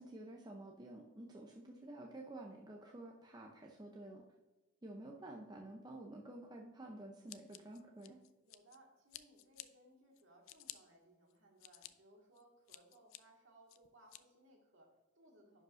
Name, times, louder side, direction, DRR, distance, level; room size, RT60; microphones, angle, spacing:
voice 1, 0.0-4.2 4.8-8.2, right 1 dB, 20° right, 0 dB, 0.6 m, -51 dB
Scissors, 7.3-8.8 9.1-9.7 10.2-10.8 11.3-11.9 12.4-13.2 13.7-14.2, left 14 dB, 65° left, 0.4 m, -52 dB
voice 2, 8.4-15.6, right 1 dB, 60° right, 0 dB, 1.9 m, -65 dB
10.5 x 5.1 x 2.6 m, 1.1 s
head